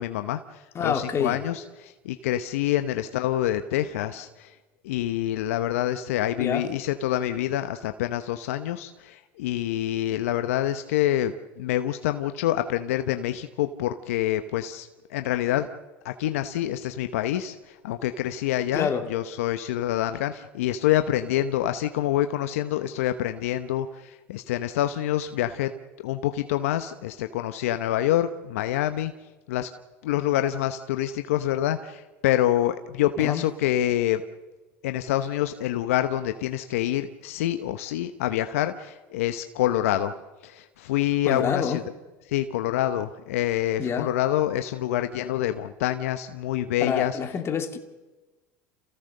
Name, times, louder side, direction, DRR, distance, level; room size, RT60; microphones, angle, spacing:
voice 1, 0.0-4.5 4.8-15.7 16.0-25.7 26.0-29.1 29.5-29.7 30.0-34.2 34.8-40.1 40.4-41.8 42.3-47.2, left 12 dB, 80° left, 0.9 m, -26 dB
voice 2, 0.7-1.4 6.4-6.6 18.7-19.1 33.2-33.4 41.3-41.8 43.8-44.1 46.8-47.8, left 7 dB, 35° left, 2.5 m, -27 dB
27.5 x 16.0 x 6.6 m
hypercardioid pair, 95°, 8 cm